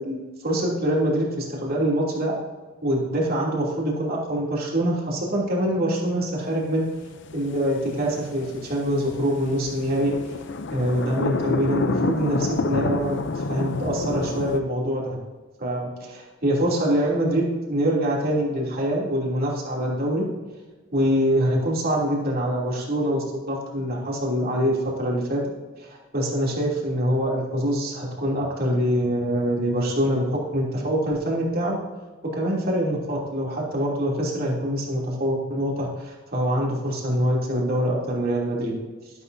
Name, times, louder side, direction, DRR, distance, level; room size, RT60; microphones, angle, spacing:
voice 1, 0.0-2.3 2.8-6.8 7.3-10.1 10.7-15.2 15.6-20.2 20.9-25.4 25.8-31.8 32.3-38.7, equal, 50° right, -3 dB, 3.0 m, -24 dB
sound 1, 6.8-14.6, left 3 dB, 65° left, 0.6 m, -29 dB
12.0 x 11.5 x 2.7 m, 1.3 s
head